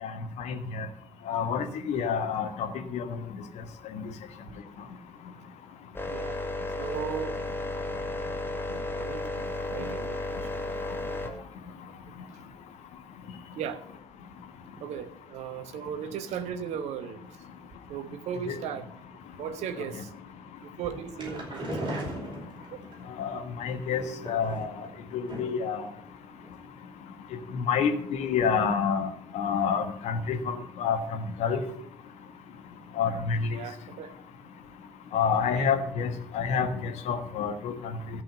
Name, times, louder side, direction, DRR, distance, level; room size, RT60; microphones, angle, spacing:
voice 1, 0.4-0.9 1.3-3.2 3.9-4.0 18.5-18.6 23.2-24.8 25.1-25.9 27.5-29.1 29.3-31.6 33.0-33.5 35.1-37.7, left 6 dB, 60° left, 1.4 m, -28 dB
sound 1, 6.0-11.3, left 2 dB, 15° left, 1.9 m, -33 dB
voice 2, 6.1-6.4 6.8-7.4 8.7-10.7 13.5-13.8 14.8-17.2 17.9-18.9 19.4-20.2 20.6-21.8 33.5-34.1 35.5-35.7, right 8 dB, 60° right, 1.1 m, -37 dB
sound 2, 20.8-22.9 23.9-24.9 25.3-25.7 26.0-26.1 26.4-26.5, right 1 dB, 40° right, 5.1 m, -37 dB
13.5 x 5.4 x 8.0 m
figure-of-eight pair, 45°, 13 cm